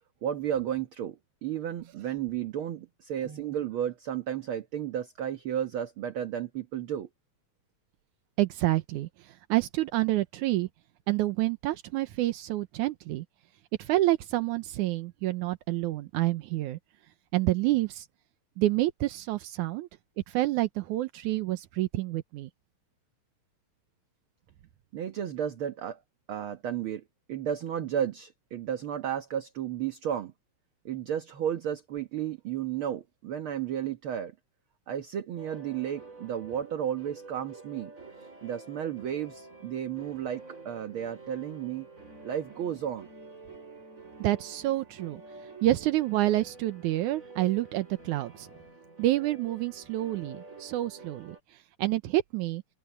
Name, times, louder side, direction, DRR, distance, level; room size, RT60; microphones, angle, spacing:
voice 1, 0.2-7.1 24.9-26.0 26.3-27.0 27.3-30.3 30.8-34.3 34.9-37.9 38.4-41.8 42.2-43.1, right 9 dB, 55° right, 1.7 m, -33 dB
voice 2, 8.4-10.7 11.1-13.3 13.8-16.8 17.3-18.1 18.6-19.9 20.3-22.5 44.2-45.2 45.6-48.5 49.0-51.4 51.8-52.6, right 16 dB, 85° right, 2.3 m, -28 dB
sound 1, 35.4-51.4, right 3 dB, 25° right, 5.2 m, -49 dB
open air
omnidirectional pair, 3.5 m